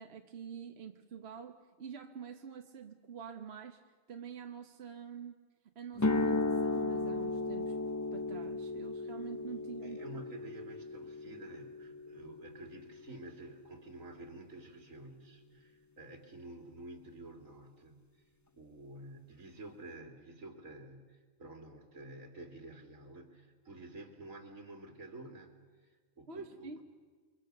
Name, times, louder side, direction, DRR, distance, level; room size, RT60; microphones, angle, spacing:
voice 1, 0.0-5.4 5.7-7.8 8.1-10.2 26.3-26.8, right 7 dB, 50° right, 5 dB, 1.3 m, -47 dB
sound 1, 6.0-14.0, left 3 dB, 25° left, 0.3 m, -36 dB
voice 2, 9.8-18.2 18.5-26.8, right 2 dB, 75° right, 3 dB, 3.3 m, -50 dB
28.5 x 24.0 x 6.7 m, 1.5 s
omnidirectional pair, 1.4 m